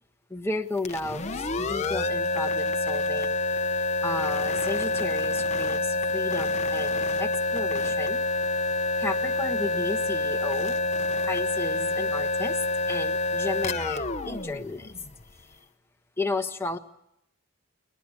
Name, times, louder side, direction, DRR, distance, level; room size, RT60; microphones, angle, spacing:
voice 1, 0.3-3.4 4.0-8.2 9.0-10.8 11.2-12.6 12.9-14.9 16.2-16.8, left 2 dB, 10° left, 4 dB, 1.3 m, -33 dB
sound 1, 0.8-15.4, left 2 dB, 30° left, 0.9 m, -27 dB
21.5 x 20.5 x 8.3 m, 0.80 s
head